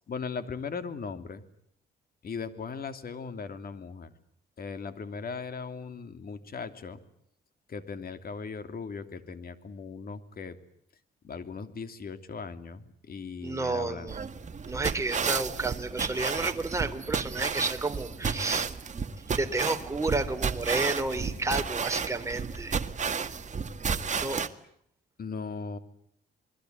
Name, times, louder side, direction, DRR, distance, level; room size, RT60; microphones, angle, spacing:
voice 1, 0.1-1.4 2.2-4.1 4.6-7.0 7.7-10.6 11.2-14.1 25.2-25.8, left 5 dB, 50° left, 10 dB, 2.9 m, -38 dB
voice 2, 13.4-14.2 14.7-18.7 19.3-22.8 24.2-24.4, right 3 dB, 15° right, 5 dB, 3.1 m, -31 dB
sound 1, 14.1-24.5, right 5 dB, 35° right, 1.9 m, -32 dB
28.0 x 22.0 x 9.4 m, 0.69 s
cardioid pair, 90°, 20 cm